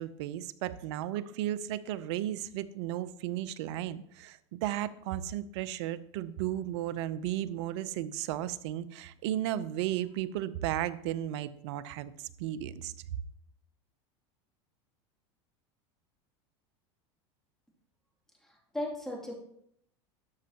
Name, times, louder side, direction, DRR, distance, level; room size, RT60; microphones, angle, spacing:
voice 1, 0.0-12.9, right 12 dB, 70° right, 16 dB, 0.6 m, -34 dB
voice 2, 18.4-19.3, left 1 dB, 5° left, -2 dB, 2.6 m, -37 dB
12.5 x 6.3 x 2.9 m, 0.71 s
hypercardioid pair, 95°, 15 cm